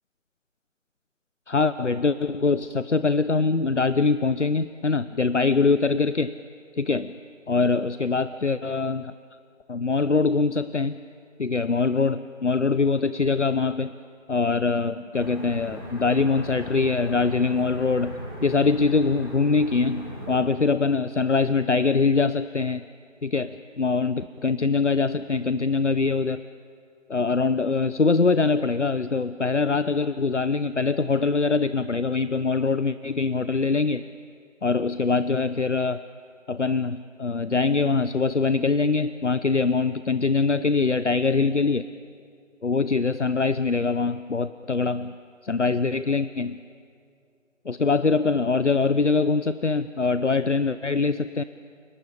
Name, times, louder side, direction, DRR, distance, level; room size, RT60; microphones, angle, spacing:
voice 1, 1.5-6.3 6.7-7.1 7.5-9.1 9.7-11.0 11.4-13.9 14.3-22.8 23.2-26.4 27.1-34.1 34.6-36.0 36.5-41.9 42.6-45.1 45.4-46.6 47.6-51.4, left 4 dB, 65° left, 13 dB, 0.8 m, -23 dB
sound 1, 15.1-20.4, equal, 20° left, 4.1 m, -38 dB
29.5 x 19.0 x 9.9 m, 2.3 s
figure-of-eight pair, 180°, 39 cm